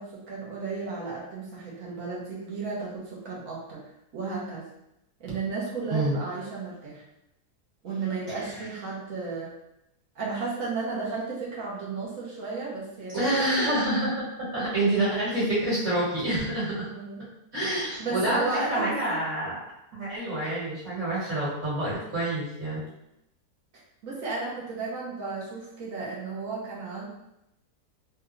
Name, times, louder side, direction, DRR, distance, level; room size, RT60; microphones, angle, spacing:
voice 1, 0.0-3.8 4.1-4.6 5.2-7.0 7.8-9.5 10.1-13.7 16.9-17.2 18.0-19.2 19.9-20.1 24.0-27.1, right 4 dB, 60° right, -5 dB, 1.2 m, -33 dB
voice 2, 13.1-14.2 14.5-16.9 17.5-19.5 19.9-22.8, right 1 dB, 45° right, -12 dB, 1.8 m, -27 dB
3.4 x 2.3 x 3.1 m, 0.84 s
omnidirectional pair, 1.6 m